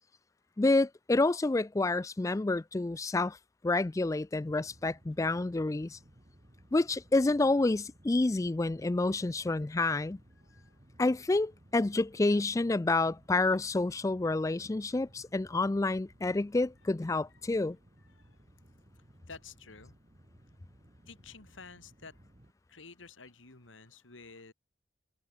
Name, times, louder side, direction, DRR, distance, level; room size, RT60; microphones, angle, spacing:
voice 1, 0.6-3.4 3.6-6.0 6.7-10.2 11.0-17.8, left 2 dB, 15° left, 0.3 m, -28 dB
sound 1, 4.4-22.5, right 1 dB, 35° right, 2.2 m, -60 dB
voice 2, 10.4-10.8 18.1-18.4 19.3-19.9 21.1-22.2 22.7-24.5, left 4 dB, 90° left, 2.5 m, -51 dB
head